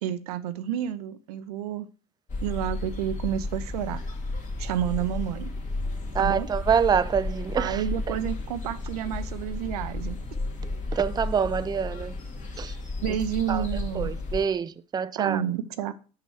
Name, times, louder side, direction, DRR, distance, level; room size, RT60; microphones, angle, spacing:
voice 1, 0.0-1.9 2.4-4.0 4.6-5.5 6.1-6.5 7.6-10.2 13.0-14.1 15.2-15.9, right 10 dB, 80° right, 0.7 m, -30 dB
sound 1, 2.3-14.5, left 2 dB, 40° left, 2.4 m, -33 dB
voice 2, 6.1-7.8 10.9-12.1 12.6-12.8 13.5-13.7 13.9-15.4, right 7 dB, 20° right, 0.5 m, -26 dB
6.0 x 5.6 x 6.3 m
hypercardioid pair, 75°, 19 cm